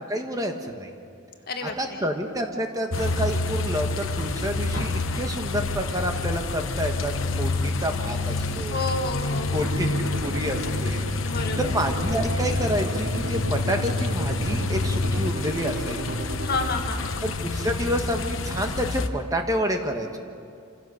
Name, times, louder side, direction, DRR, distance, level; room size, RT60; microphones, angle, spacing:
voice 1, 0.1-0.9 1.6-8.8 9.5-16.2 17.2-20.2, equal, 20° right, 4 dB, 1.3 m, -29 dB
voice 2, 1.5-2.0 8.5-9.7 11.2-11.8 16.4-17.2, left 2 dB, 50° left, 4 dB, 1.7 m, -30 dB
sound 1, 2.9-19.1, left 3 dB, 75° left, 1.0 m, -28 dB
sound 2, 6.5-17.5, right 1 dB, 85° right, 4.8 m, -45 dB
sound 3, 9.6-16.7, right 3 dB, 60° right, 0.7 m, -36 dB
27.0 x 16.5 x 6.4 m, 2.4 s
head